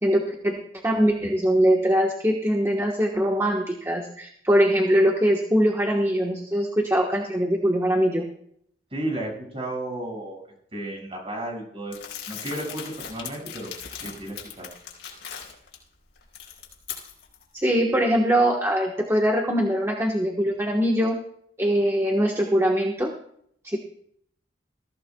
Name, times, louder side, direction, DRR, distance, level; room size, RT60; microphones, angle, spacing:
voice 1, 0.0-8.3 17.5-21.2 21.6-23.1 23.6-23.8, equal, 15° right, 1 dB, 1.2 m, -22 dB
voice 2, 8.9-10.4 10.7-12.0 12.3-13.7 14.0-14.7, right 1 dB, 35° right, 0 dB, 6.0 m, -33 dB
Crumpling crinkling, 11.9-15.7 16.2-17.4, left 8 dB, 70° left, 4.5 m, -39 dB
21.0 x 15.0 x 2.3 m, 0.67 s
head